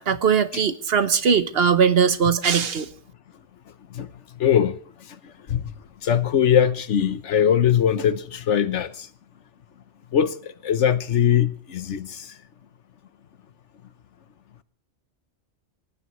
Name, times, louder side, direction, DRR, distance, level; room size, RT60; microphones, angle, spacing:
voice 1, 0.0-2.9, right 6 dB, 60° right, 1.2 m, -20 dB
voice 2, 4.4-4.8 5.5-5.6 6.0-8.9 10.1-10.3 10.6-12.2, left 9 dB, 85° left, 1.3 m, -20 dB
24.0 x 18.0 x 3.1 m
omnidirectional pair, 1.2 m